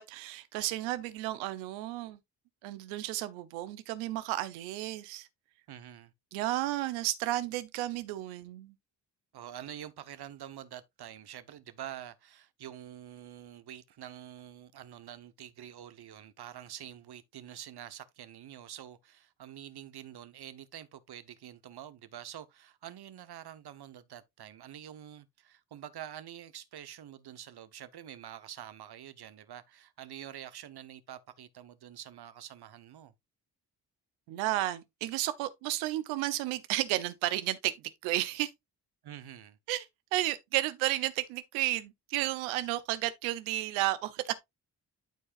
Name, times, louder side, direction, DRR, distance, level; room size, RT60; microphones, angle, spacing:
voice 1, 0.0-2.2 2.6-5.3 6.3-8.7 34.3-38.5 39.7-39.9 40.1-44.4, right 16 dB, 90° right, 0.8 m, -32 dB
voice 2, 5.7-6.1 9.3-33.1 39.0-39.6, right 11 dB, 55° right, 1.1 m, -47 dB
12.0 x 4.7 x 2.5 m
hypercardioid pair, 50°, 46 cm